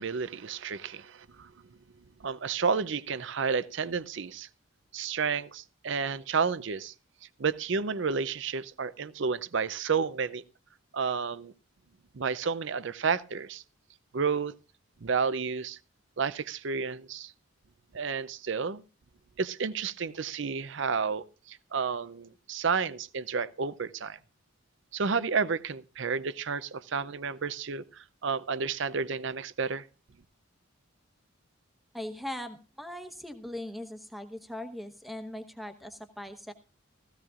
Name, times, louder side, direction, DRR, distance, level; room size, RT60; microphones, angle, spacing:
voice 1, 0.0-1.5 2.2-4.5 4.9-6.9 7.4-10.4 10.9-11.5 12.1-13.6 14.1-14.5 15.0-15.8 16.2-17.3 17.9-18.8 19.4-24.2 24.9-29.8, right 5 dB, 60° right, 0.5 m, -31 dB
voice 2, 31.9-36.5, left 1 dB, ahead, 1.0 m, -40 dB
16.5 x 15.5 x 2.5 m
head